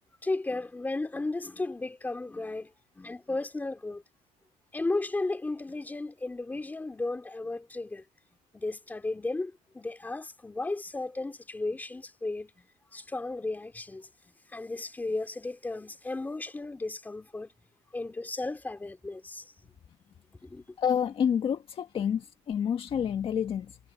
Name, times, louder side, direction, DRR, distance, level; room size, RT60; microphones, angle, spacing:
voice 1, 0.2-4.0 4.7-8.0 8.5-14.1 14.5-17.5 17.9-19.5 20.4-20.6 22.0-22.1, left 2 dB, 10° left, 3.8 m, -34 dB
voice 2, 20.8-23.8, left 8 dB, 35° left, 1.5 m, -28 dB
cardioid pair, 150°, 16 cm